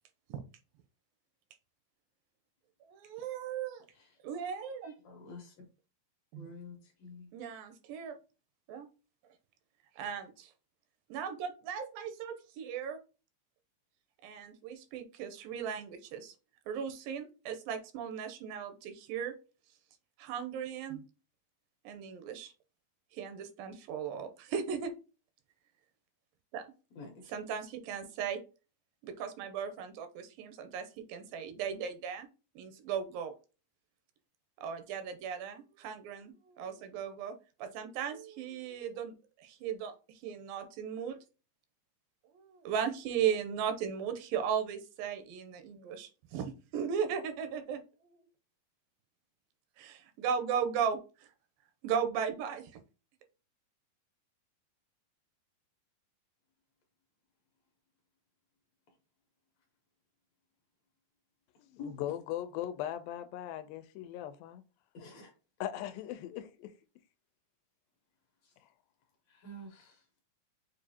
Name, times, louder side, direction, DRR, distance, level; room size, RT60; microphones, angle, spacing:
voice 1, 2.9-3.8 4.2-4.9 6.3-6.5 7.3-8.2 8.7-8.9 10.0-10.5 11.1-13.0 14.2-16.3 16.7-19.3 20.2-21.0 21.8-22.5 23.1-24.9 26.5-26.6 27.3-28.4 29.0-32.3 32.6-33.3 34.6-37.3 37.6-41.2 42.3-48.2 49.8-51.3 51.8-52.7, right 7 dB, 90° right, 2.4 m, -37 dB
voice 2, 4.8-5.6 6.4-7.3 26.9-27.3 61.8-62.1 64.9-65.3 68.4-68.5 69.3-70.0, left 2 dB, 70° left, 1.7 m, -48 dB
voice 3, 61.6-64.6 65.6-66.7, left 12 dB, 90° left, 2.3 m, -39 dB
6.9 x 2.5 x 2.7 m
omnidirectional pair, 4.0 m